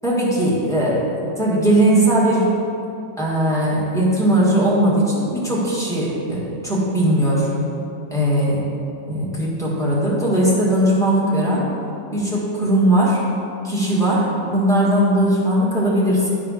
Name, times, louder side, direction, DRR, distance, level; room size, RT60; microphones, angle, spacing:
voice 1, 0.0-2.5 3.2-7.5 8.1-8.6 9.1-11.7 12.1-13.2 13.6-16.3, right 1 dB, ahead, -7 dB, 1.6 m, -19 dB
10.0 x 3.7 x 6.4 m, 2.6 s
omnidirectional pair, 1.9 m